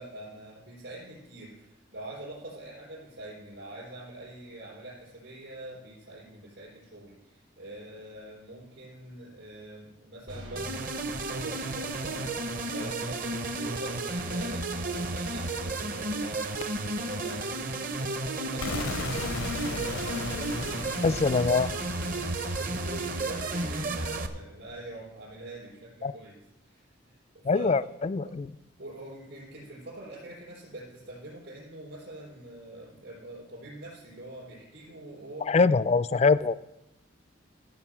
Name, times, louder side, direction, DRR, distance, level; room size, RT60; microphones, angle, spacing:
voice 1, 0.0-21.4 22.0-26.3 26.6-27.7 28.2-28.3 28.8-35.6, right 1 dB, 60° right, -7 dB, 3.8 m, -44 dB
sound 1, 10.3-18.3, equal, 85° right, 2.7 m, -50 dB
sound 2, 10.6-24.3, right 2 dB, 45° right, 0.8 m, -32 dB
sound 3, 18.6-24.5, left 4 dB, 75° left, 0.6 m, -38 dB
voice 2, 21.0-21.7 26.0-26.1 27.4-28.5 35.4-36.6, left 4 dB, 30° left, 16 dB, 0.3 m, -23 dB
14.0 x 5.4 x 7.3 m, 0.88 s
head